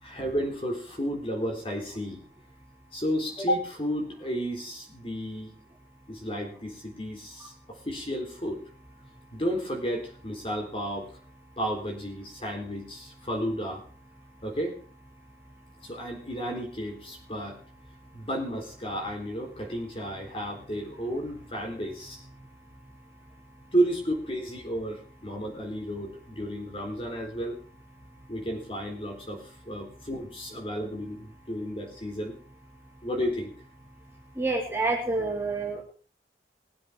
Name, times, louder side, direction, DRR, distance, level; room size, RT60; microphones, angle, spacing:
voice 1, 0.0-2.2 2.9-5.6 6.1-8.6 9.3-11.2 11.6-13.9 14.4-14.8 15.8-17.6 18.1-22.2 23.7-27.6 28.3-32.4 33.0-33.5, equal, 30° left, 1 dB, 3.8 m, -32 dB
voice 2, 34.4-35.8, right 3 dB, 15° right, -2 dB, 3.3 m, -28 dB
20.5 x 7.6 x 4.7 m, 0.41 s
head